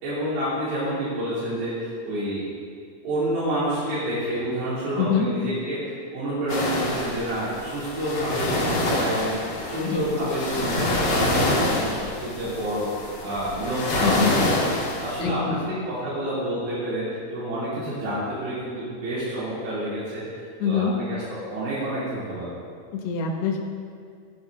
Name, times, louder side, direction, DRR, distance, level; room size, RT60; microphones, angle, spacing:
voice 1, 0.0-2.5 3.0-9.4 9.6-14.7 15.0-21.2 21.5-22.5, right 1 dB, 80° right, -11 dB, 5.3 m, -29 dB
voice 2, 5.0-5.3 9.8-10.0 14.0-14.3 15.2-15.6 20.6-20.9 22.9-23.6, left 6 dB, 90° left, 0 dB, 1.4 m, -24 dB
sound 1, 6.5-15.2, left 1 dB, 55° left, 1.2 m, -26 dB
16.5 x 8.9 x 3.9 m, 2.2 s
omnidirectional pair, 4.8 m